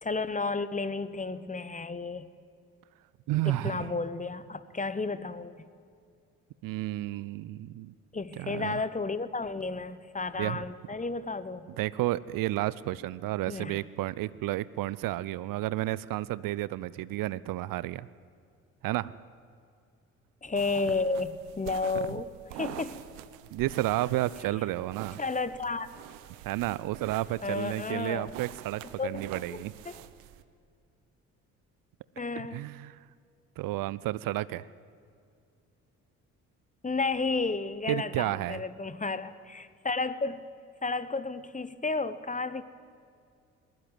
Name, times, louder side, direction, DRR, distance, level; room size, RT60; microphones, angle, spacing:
voice 1, 0.0-2.3 3.4-5.5 8.1-11.7 13.5-13.8 20.4-23.0 25.2-25.9 27.4-28.3 29.0-30.0 32.2-32.6 36.8-40.5 40.8-42.6, left 3 dB, 20° left, 15 dB, 1.2 m, -32 dB
voice 2, 3.3-3.9 6.6-7.9 8.4-8.8 10.4-10.6 11.8-18.1 18.8-19.1 23.5-25.2 26.4-29.7 32.4-33.0 33.6-34.6 37.9-38.6, right 16 dB, 55° right, 19 dB, 0.7 m, -31 dB
sound 1, 20.6-30.4, right 13 dB, 70° right, 1.1 m, -46 dB
20.5 x 20.0 x 9.3 m, 2.4 s
figure-of-eight pair, 50°, 40 cm